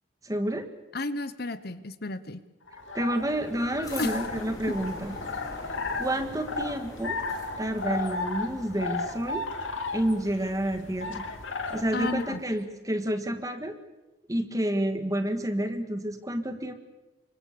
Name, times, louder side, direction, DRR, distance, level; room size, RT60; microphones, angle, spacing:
voice 1, 0.2-0.7 2.9-5.1 5.9-7.2 7.6-9.4 9.9-11.2 11.7-13.7 14.3-16.7, right 1 dB, 15° right, 7 dB, 1.8 m, -29 dB
voice 2, 0.9-2.4 4.0-4.2 11.9-12.4, left 2 dB, 55° left, 13 dB, 1.0 m, -32 dB
sound 1, 2.7-12.4, left 3 dB, 80° left, 2.6 m, -35 dB
sound 2, 3.8-8.7, left 1 dB, 20° left, 5.0 m, -43 dB
28.5 x 24.5 x 6.9 m, 1.0 s
head